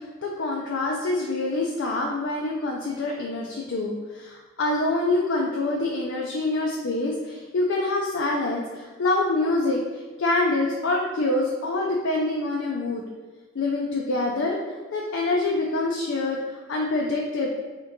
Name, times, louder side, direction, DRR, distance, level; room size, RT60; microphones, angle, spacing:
voice 1, 0.0-9.8 10.2-13.0 13.5-14.6 14.9-17.5, left 2 dB, 65° left, -1 dB, 0.4 m, -26 dB
3.7 x 3.5 x 2.7 m, 1.3 s
head